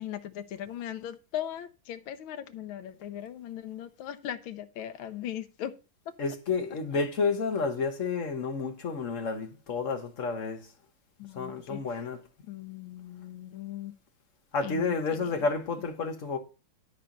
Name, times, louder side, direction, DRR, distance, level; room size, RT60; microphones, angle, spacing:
voice 1, 0.0-5.7 6.1-6.2 11.2-11.8 12.5-13.9 14.6-15.4, left 11 dB, 80° left, 1.6 m, -39 dB
voice 2, 6.2-10.7 11.3-12.2 14.5-16.4, left 4 dB, 45° left, 1.3 m, -30 dB
12.0 x 4.3 x 5.3 m
omnidirectional pair, 2.2 m